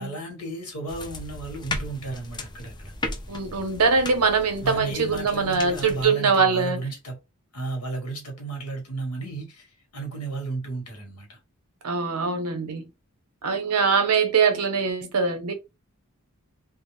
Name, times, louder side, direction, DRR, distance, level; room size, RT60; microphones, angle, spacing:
voice 1, 0.0-2.9 4.6-7.2 7.5-11.4, right 3 dB, 85° left, 1.2 m, -34 dB
sound 1, 0.9-6.1, left 2 dB, 20° left, 0.4 m, -36 dB
voice 2, 3.3-6.8 11.8-12.8 13.4-15.5, right 5 dB, 85° right, 0.7 m, -23 dB
2.3 x 2.0 x 3.0 m
head